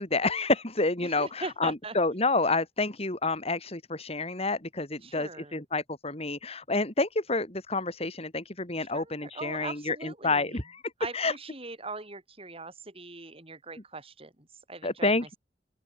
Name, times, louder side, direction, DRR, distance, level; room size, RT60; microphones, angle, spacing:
voice 1, 0.0-10.8 11.1-11.3 14.8-15.3, left 3 dB, 35° left, 3.6 m, -29 dB
voice 2, 1.0-1.9 5.0-5.6 8.9-10.6 11.0-14.3 14.7-15.1, right 3 dB, 35° right, 7.5 m, -41 dB
open air
head